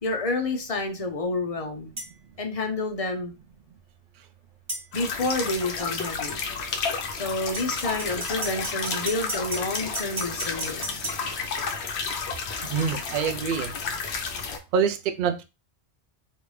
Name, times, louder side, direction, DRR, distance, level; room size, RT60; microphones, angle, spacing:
voice 1, 0.0-1.9 2.4-3.3 4.9-6.4 7.1-11.1, left 2 dB, 40° left, 4 dB, 0.6 m, -29 dB
sound 1, 2.0-2.1 4.7-4.9 7.5-11.2, right 2 dB, 25° right, 1.2 m, -34 dB
sound 2, 4.9-14.6, left 5 dB, 70° left, 0.9 m, -31 dB
voice 2, 12.7-13.7 14.7-15.4, right 6 dB, 60° right, 7 dB, 0.5 m, -25 dB
3.3 x 2.6 x 3.1 m, 0.28 s
omnidirectional pair, 1.2 m